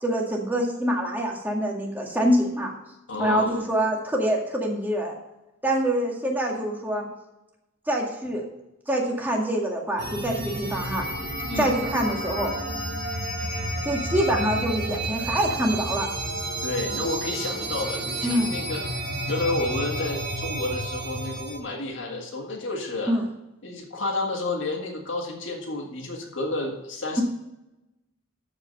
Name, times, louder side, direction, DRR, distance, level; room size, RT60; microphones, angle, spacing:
voice 1, 0.0-2.7 3.2-5.1 5.6-7.1 7.9-8.4 8.9-11.0 11.6-12.5 13.6-16.1 18.2-18.5 23.1-23.2, right 1 dB, 10° right, -1 dB, 1.9 m, -25 dB
voice 2, 3.1-3.7 11.5-11.7 16.6-19.0 19.3-23.2 23.6-27.2, left 2 dB, 65° left, 0 dB, 1.9 m, -30 dB
sound 1, 10.0-21.6, right 1 dB, 50° right, 2.1 m, -31 dB
13.0 x 5.1 x 5.4 m, 0.94 s
head